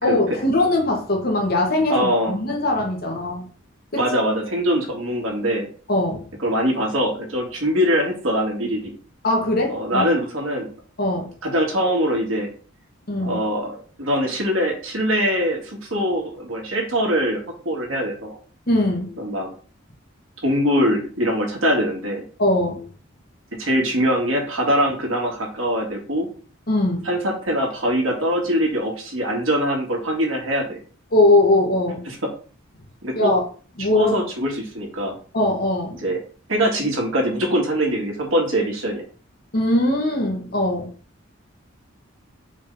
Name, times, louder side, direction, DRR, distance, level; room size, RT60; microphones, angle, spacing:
voice 1, 0.0-3.5 3.9-4.0 5.9-6.3 9.2-10.1 11.0-11.3 13.1-13.4 18.7-19.1 22.4-22.9 26.7-27.1 31.1-32.0 33.1-33.4 33.8-34.1 35.3-36.0 39.5-40.9, left 1 dB, 50° left, 0 dB, 1.5 m, -20 dB
voice 2, 1.9-2.3 4.0-5.7 6.4-9.0 9.7-10.7 11.4-12.5 13.2-17.4 17.7-18.4 19.2-19.5 20.4-22.2 23.6-26.3 27.0-30.8 32.1-32.2 33.0-33.3 33.9-35.1 36.0-36.2 36.5-39.0, equal, 85° right, 0 dB, 2.1 m, -22 dB
5.1 x 3.7 x 5.5 m, 0.40 s
head